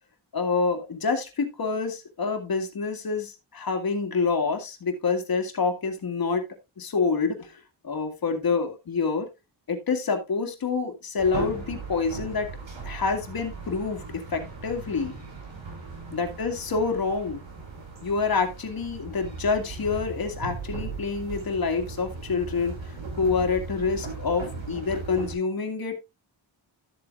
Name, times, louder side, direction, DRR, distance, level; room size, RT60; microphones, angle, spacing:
voice 1, 0.3-6.5 6.8-9.3 9.7-12.5 12.9-15.2 16.1-17.4 18.0-26.0, left 4 dB, 50° left, 5 dB, 2.1 m, -27 dB
sound 1, 11.2-25.3, right 3 dB, 80° right, 6.7 m, -38 dB
13.0 x 7.9 x 2.5 m, 0.23 s
wide cardioid pair, 175°, 45 cm